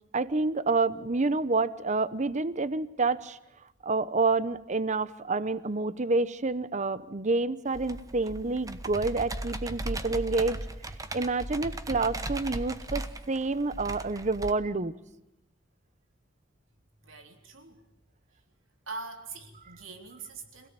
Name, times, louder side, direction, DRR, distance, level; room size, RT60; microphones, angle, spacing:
voice 1, 0.1-3.4 3.8-10.6 11.1-14.9, right 3 dB, 40° right, 16 dB, 0.8 m, -28 dB
Computer keyboard, 7.7-14.5, right 1 dB, 15° right, 1.2 m, -37 dB
voice 2, 17.0-17.9 18.9-20.7, right 3 dB, 90° right, 5 dB, 3.6 m, -43 dB
26.5 x 17.0 x 9.0 m, 0.92 s
head